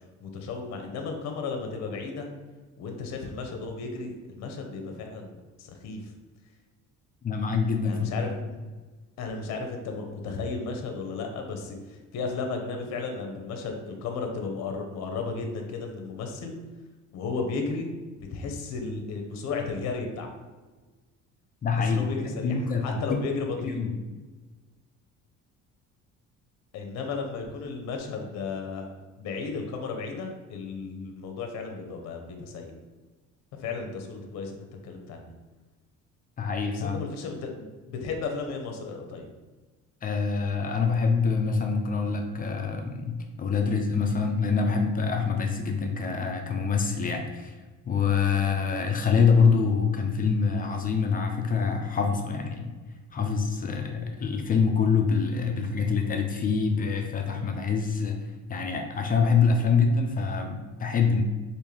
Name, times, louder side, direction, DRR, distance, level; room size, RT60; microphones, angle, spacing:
voice 1, 0.2-2.3 2.8-6.0 7.9-8.4 9.2-16.5 17.1-17.9 18.2-20.3 21.9-23.8 26.7-32.7 33.6-35.3 36.7-39.3 53.7-53.8, left 4 dB, 60° left, 3 dB, 0.7 m, -34 dB
voice 2, 7.2-8.3 21.6-22.1 22.4-23.2 23.7-23.9 36.4-37.0 40.0-47.6 47.9-52.8 53.1-58.2 58.5-61.2, left 5 dB, 30° left, 4 dB, 0.3 m, -25 dB
3.6 x 2.6 x 3.2 m, 1.3 s
cardioid pair, 140°, 31 cm